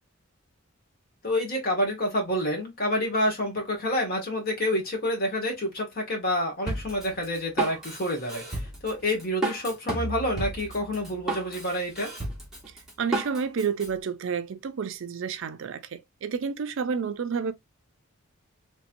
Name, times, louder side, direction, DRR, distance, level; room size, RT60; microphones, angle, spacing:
voice 1, 1.2-12.1, left 1 dB, 45° left, 1.4 m, -28 dB
Drum kit, 6.7-13.9, right 2 dB, ahead, 1.3 m, -33 dB
voice 2, 13.0-17.5, right 6 dB, 60° right, 0.4 m, -30 dB
3.2 x 3.0 x 2.5 m
head